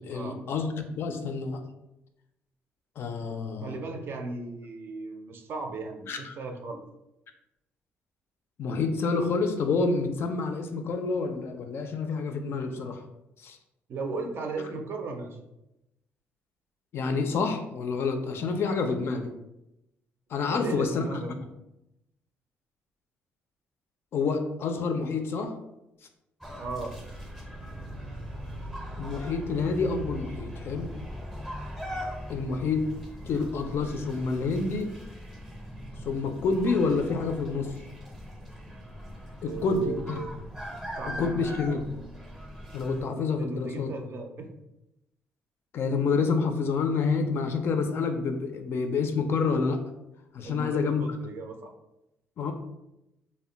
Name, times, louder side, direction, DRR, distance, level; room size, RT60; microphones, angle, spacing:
voice 1, 0.0-1.6 3.0-3.7 6.1-6.4 8.6-13.0 13.4-13.6 16.9-19.3 20.3-21.2 24.1-25.5 29.0-30.9 32.3-32.8 33.3-34.9 36.0-37.7 39.4-40.2 41.2-41.8 42.7-43.9 45.7-49.8 50.3-51.0 52.4-52.5, left 4 dB, 55° left, 6 dB, 0.3 m, -28 dB
voice 2, 3.6-6.8 13.9-15.4 20.5-21.3 26.6-27.0 39.4-40.3 41.0-41.3 41.7-41.8 43.4-44.5 50.4-51.7, right 3 dB, 50° right, 4 dB, 0.4 m, -36 dB
sound 1, 26.4-43.0, equal, ahead, 0.5 m, -40 dB
2.1 x 2.0 x 3.7 m, 0.89 s
cardioid pair, 120°, 5 cm